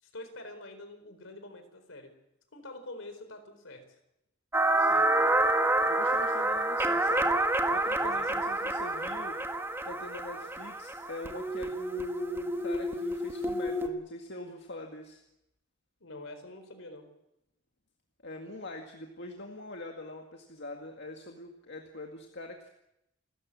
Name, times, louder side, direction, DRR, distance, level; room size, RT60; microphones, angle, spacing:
voice 1, 0.0-2.1 2.5-3.8 8.0-8.5 16.0-17.1, left 2 dB, 75° left, 8 dB, 4.4 m, -46 dB
sound 1, 4.5-13.9, right 1 dB, 10° right, 1.6 m, -28 dB
voice 2, 4.8-5.4 5.9-9.4 9.8-15.2 18.2-22.7, left 2 dB, 55° left, 3 dB, 2.0 m, -44 dB
29.0 x 13.5 x 8.6 m, 0.86 s
head